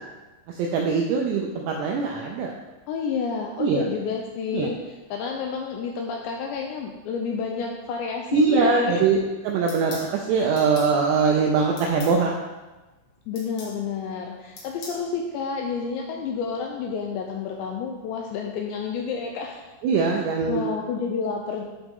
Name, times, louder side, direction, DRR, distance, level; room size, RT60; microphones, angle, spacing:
voice 1, 0.6-2.5 3.6-3.9 4.5-4.7 8.3-9.2 9.4-12.3 19.8-20.6, right 5 dB, 85° right, 0 dB, 2.4 m, -22 dB
voice 2, 2.9-4.8 5.1-9.1 13.3-19.6 20.0-21.6, left 5 dB, 80° left, 1 dB, 2.6 m, -30 dB
sound 1, 9.7-10.1 10.6-10.9 11.8-12.2 13.4-13.8 14.6-15.0, left 3 dB, 60° left, 3.0 m, -40 dB
12.0 x 5.0 x 3.7 m, 1.1 s
omnidirectional pair, 5.7 m